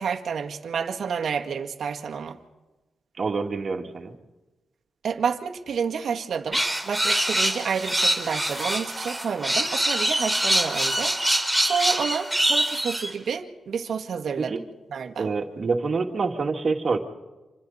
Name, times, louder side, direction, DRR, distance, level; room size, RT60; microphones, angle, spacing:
voice 1, 0.0-2.4 5.0-14.6 14.9-15.3, right 6 dB, 70° right, 4 dB, 1.8 m, -29 dB
voice 2, 3.2-4.1 14.4-14.6 15.2-17.0, right 4 dB, 55° right, 3 dB, 2.4 m, -26 dB
sound 1, 6.5-13.1, right 1 dB, ahead, 3.7 m, -24 dB
27.0 x 26.0 x 4.3 m, 1.2 s
cardioid pair, 55°, 0 cm